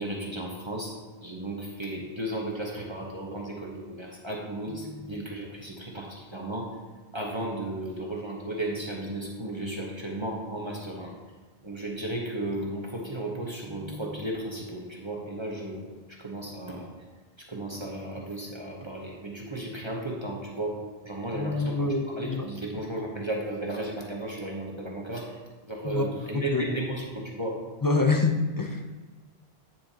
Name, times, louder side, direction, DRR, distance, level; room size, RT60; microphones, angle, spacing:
voice 1, 0.0-6.7 7.1-11.1 11.6-15.8 16.1-16.9 17.4-20.8 21.0-21.8 22.2-25.4 25.7-27.6, right 1 dB, 30° right, -2 dB, 1.0 m, -34 dB
voice 2, 21.3-22.5 25.8-26.1 26.3-26.8 27.8-29.0, left 3 dB, 25° left, 4 dB, 0.5 m, -26 dB
8.9 x 7.5 x 2.9 m, 1.3 s
omnidirectional pair, 1.1 m